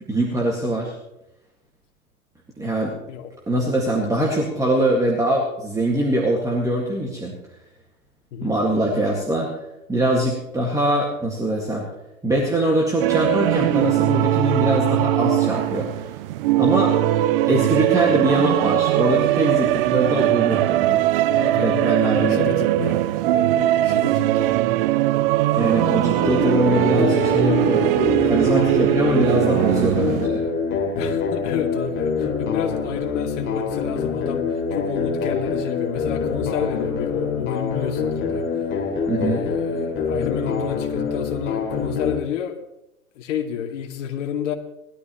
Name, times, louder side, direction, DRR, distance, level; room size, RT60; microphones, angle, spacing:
voice 1, 0.1-1.0 2.6-3.0 3.5-7.4 8.4-9.5 9.9-11.9 12.2-16.1 16.6-17.0 17.5-21.0 21.6-22.5 25.5-27.9 28.2-30.4 39.1-39.4, right 1 dB, 5° right, -2 dB, 1.9 m, -22 dB
sound 1, 13.0-30.3, right 15 dB, 40° right, 0.5 m, -20 dB
voice 2, 21.3-24.6 31.0-38.4 39.2-42.6 43.2-44.5, left 8 dB, 55° left, 4 dB, 2.3 m, -30 dB
sound 2, 26.2-42.2, left 5 dB, 25° left, 2.9 m, -25 dB
20.0 x 12.5 x 3.1 m, 0.88 s
hypercardioid pair, 120°, 43 cm